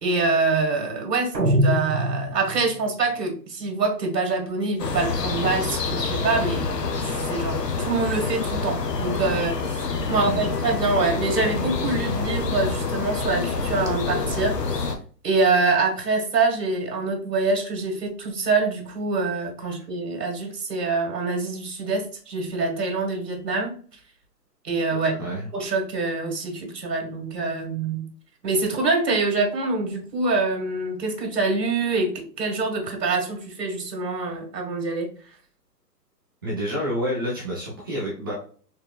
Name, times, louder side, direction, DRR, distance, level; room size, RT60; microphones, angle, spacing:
voice 1, 0.0-6.6 7.2-14.6 15.2-23.8 24.6-25.1 25.5-28.1 28.4-35.1, right 3 dB, 70° right, 2 dB, 2.0 m, -25 dB
sound 1, 1.3-2.8, equal, 85° right, 1.4 m, -23 dB
sound 2, 4.8-15.0, left 4 dB, 75° left, 1.1 m, -27 dB
voice 2, 10.0-10.5 19.6-19.8 25.2-25.4 36.4-38.3, equal, 15° right, -4 dB, 0.6 m, -29 dB
4.5 x 3.5 x 2.3 m, 0.43 s
hypercardioid pair, 145°, 49 cm